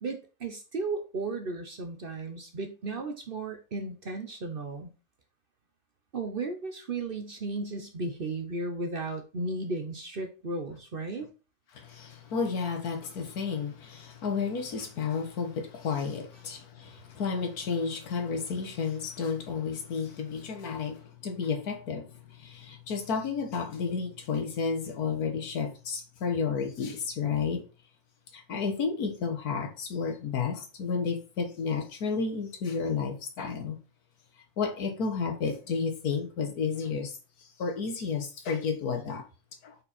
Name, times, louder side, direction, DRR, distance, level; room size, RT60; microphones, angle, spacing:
voice 1, 0.0-4.9 6.1-11.3, right 3 dB, 45° right, 0.9 m, -35 dB
voice 2, 11.7-27.7 28.3-33.8 34.6-39.2 39.6-39.8, left 5 dB, 80° left, 1.7 m, -32 dB
5.3 x 4.6 x 4.2 m
omnidirectional pair, 1.6 m